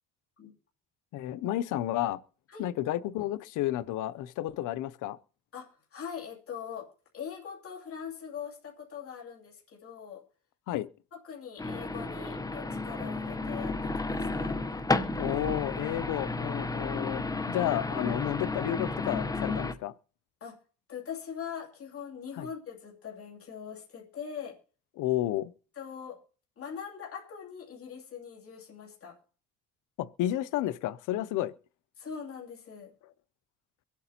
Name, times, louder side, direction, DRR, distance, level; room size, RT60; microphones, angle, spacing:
voice 1, 1.1-2.2 2.6-5.2 10.7-10.9 15.2-19.9 22.4-22.5 25.0-25.5 30.0-31.5, left 13 dB, 90° left, 0.6 m, -31 dB
voice 2, 5.5-10.2 11.2-14.6 20.4-20.6 20.9-24.6 25.8-26.2 26.6-29.2 32.0-32.9, left 7 dB, 50° left, 2.8 m, -42 dB
sound 1, 11.6-19.7, left 3 dB, 10° left, 0.8 m, -32 dB
24.0 x 8.3 x 2.8 m
cardioid pair, 90°, 30 cm